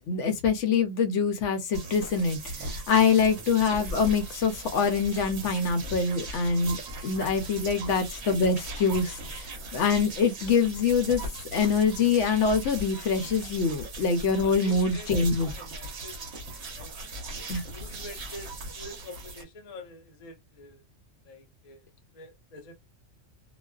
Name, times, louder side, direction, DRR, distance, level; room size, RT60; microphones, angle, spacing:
voice 1, 0.1-2.4 2.7-11.2 11.5-15.5 17.5-17.6, left 5 dB, 75° left, 0.9 m, -25 dB
sound 1, 1.7-19.4, right 2 dB, 60° right, 1.0 m, -39 dB
voice 2, 14.3-15.2 15.4-16.3 16.8-16.9 17.5-20.8 21.2-22.7, left 2 dB, 40° left, 0.6 m, -46 dB
2.4 x 2.4 x 2.2 m
omnidirectional pair, 1.3 m